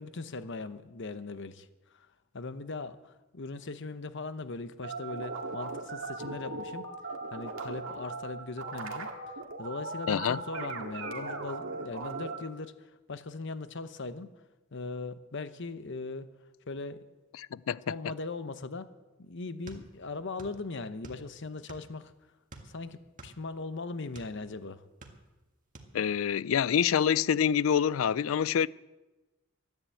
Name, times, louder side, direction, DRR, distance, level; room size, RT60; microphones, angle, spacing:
voice 1, 0.0-1.7 1.9-2.1 2.3-6.8 7.3-9.1 9.6-14.3 14.7-16.3 16.7-17.0 17.9-18.9 19.2-22.1 22.6-24.8, left 3 dB, 60° left, 0.9 m, -39 dB
sound 1, 4.8-12.4, right 3 dB, 85° right, 1.9 m, -38 dB
voice 2, 10.1-10.4 17.4-17.8 25.9-28.7, left 8 dB, 80° left, 0.4 m, -26 dB
sound 2, 19.7-20.6 20.9-22.0 22.5-24.4 24.8-25.4 25.7-25.9, right 2 dB, 40° right, 1.8 m, -49 dB
13.0 x 10.5 x 8.3 m
head